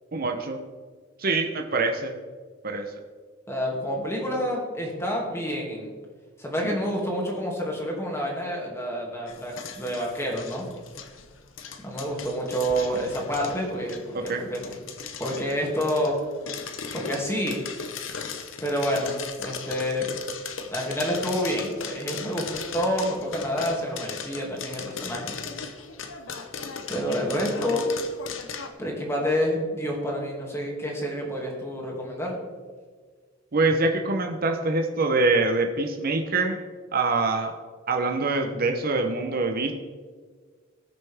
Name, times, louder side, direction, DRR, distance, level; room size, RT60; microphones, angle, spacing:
voice 1, 0.1-0.6 1.2-2.2 2.6-2.9 6.6-6.8 14.1-14.4 33.5-36.6 36.9-37.5 37.9-39.7, right 3 dB, 50° right, 4 dB, 0.9 m, -24 dB
voice 2, 3.5-5.9 6.4-10.7 11.8-14.7 15.2-16.2 16.9-17.6 18.6-20.1 20.7-25.3 26.9-27.9 28.8-32.4, equal, 15° left, -1 dB, 2.5 m, -28 dB
sound 1, 9.3-28.7, left 6 dB, 90° left, 1.0 m, -38 dB
19.5 x 6.7 x 3.6 m, 1.6 s
head